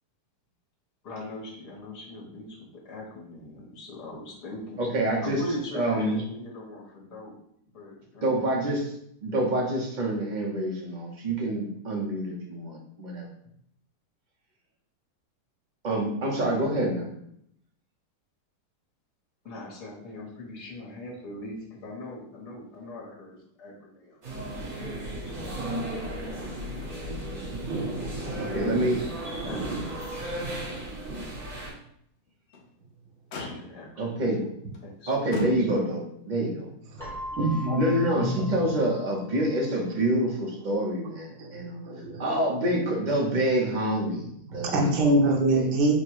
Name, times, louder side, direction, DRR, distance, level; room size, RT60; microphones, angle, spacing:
voice 1, 1.0-4.8 5.2-7.4 7.7-8.5 19.4-24.2 25.0-26.4 26.6-27.4 28.0-29.1 29.4-30.4 33.3-34.4 34.8-35.1, left 1 dB, 75° left, -4 dB, 1.8 m, -41 dB
voice 2, 4.8-6.2 8.2-9.0 9.2-13.3 15.8-17.1 28.4-29.0 34.0-34.4 35.1-36.7 37.5-41.8 42.2-45.7, right 1 dB, 35° right, -1 dB, 0.8 m, -27 dB
guia ao longe serralves, 24.2-31.7, right 1 dB, 55° right, 1.9 m, -34 dB
Motor vehicle (road), 26.4-27.0 27.3-27.4 27.9-28.9 29.3-29.4 30.0-30.1 32.3-32.7 33.3-34.0 34.7-34.9 35.3-36.1 37.2-37.3, left 4 dB, 60° left, 0.8 m, -40 dB
voice 3, 36.9-38.7 41.4-41.5 41.8-42.2 44.5-46.0, right 2 dB, 85° right, 0 dB, 1.4 m, -25 dB
Keyboard (musical), 37.0-39.7, left 1 dB, ahead, 1.1 m, -40 dB
4.4 x 2.2 x 4.6 m, 0.71 s
omnidirectional pair, 1.8 m